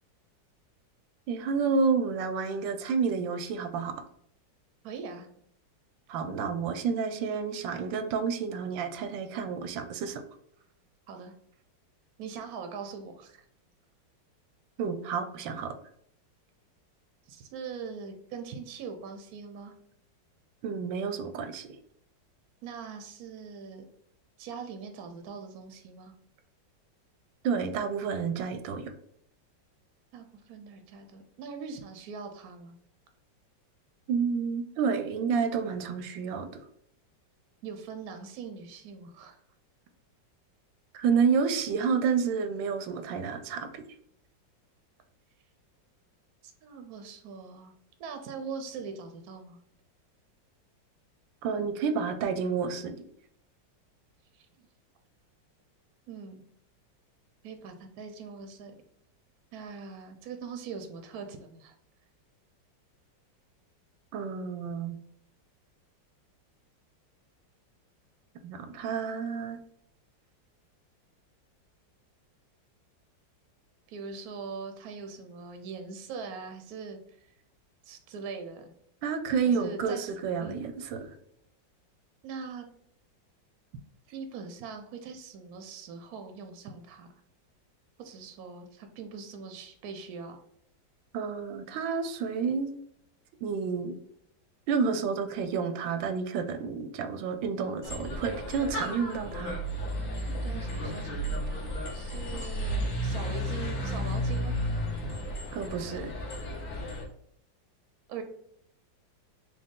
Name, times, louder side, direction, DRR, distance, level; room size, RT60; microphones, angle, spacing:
voice 1, 1.3-4.0 6.1-10.2 14.8-15.7 20.6-21.7 27.4-28.8 34.1-36.5 40.9-43.8 51.4-53.0 64.1-65.0 68.4-69.6 79.0-81.2 91.1-92.7 93.4-93.9 94.7-99.6 105.5-106.1, right 5 dB, 90° right, 9 dB, 1.3 m, -30 dB
voice 2, 4.8-5.3 11.1-11.3 12.2-13.4 17.3-19.7 22.6-23.8 24.4-26.1 30.1-32.8 37.6-39.4 46.4-47.7 48.0-49.6 54.3-54.7 56.1-56.4 57.4-58.7 59.5-61.7 73.9-77.3 77.8-78.7 79.4-80.0 80.4-80.6 82.2-82.7 84.1-87.1 88.0-90.4 100.2-104.6 108.1-108.2, right 5 dB, 70° right, 6 dB, 0.9 m, -42 dB
sound 1, 97.8-107.0, equal, 50° left, 1.2 m, -33 dB
4.4 x 2.3 x 3.6 m, 0.71 s
omnidirectional pair, 2.0 m